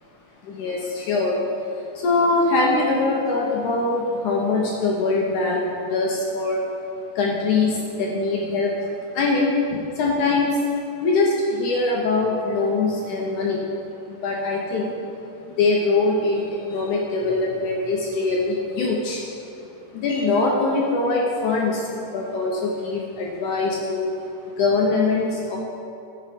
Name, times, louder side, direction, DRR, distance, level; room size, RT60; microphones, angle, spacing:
voice 1, 0.4-1.4 2.0-6.6 7.2-8.7 9.1-10.6 11.0-13.6 14.1-14.9 15.6-19.2 19.9-24.1 24.6-25.6, left 3 dB, 75° left, -2 dB, 1.8 m, -22 dB
13.5 x 5.7 x 5.2 m, 2.7 s
omnidirectional pair, 4.6 m